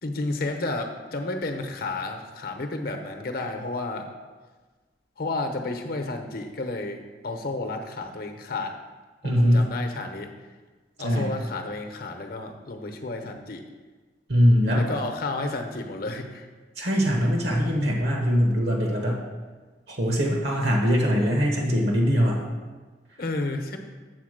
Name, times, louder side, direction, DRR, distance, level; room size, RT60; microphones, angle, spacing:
voice 1, 0.0-4.1 5.2-7.0 7.2-8.8 9.2-10.3 11.0-13.6 14.8-16.5 21.6-21.9 23.2-23.8, left 2 dB, 55° left, 5 dB, 0.8 m, -31 dB
voice 2, 9.2-9.7 11.0-11.3 14.3-14.8 16.8-19.2 19.9-22.4, equal, 70° right, 0 dB, 1.2 m, -22 dB
8.0 x 4.1 x 6.5 m, 1.4 s
head